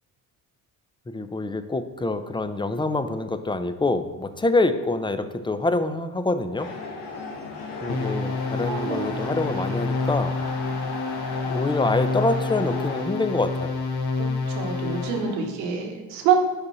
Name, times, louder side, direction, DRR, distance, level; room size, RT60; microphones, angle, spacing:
voice 1, 1.1-6.7 7.8-10.4 11.4-13.8, left 2 dB, 10° left, 10 dB, 0.5 m, -26 dB
sound 1, 6.6-13.0, left 3 dB, 75° left, 1.1 m, -36 dB
sound 2, 7.9-15.5, left 3 dB, 45° left, 1.1 m, -28 dB
voice 2, 8.6-9.3 9.6-9.8 11.3-11.4 14.1-16.4, right 7 dB, 90° right, 3 dB, 1.0 m, -27 dB
5.2 x 4.2 x 5.4 m, 1.4 s
hypercardioid pair, 45°, 50 cm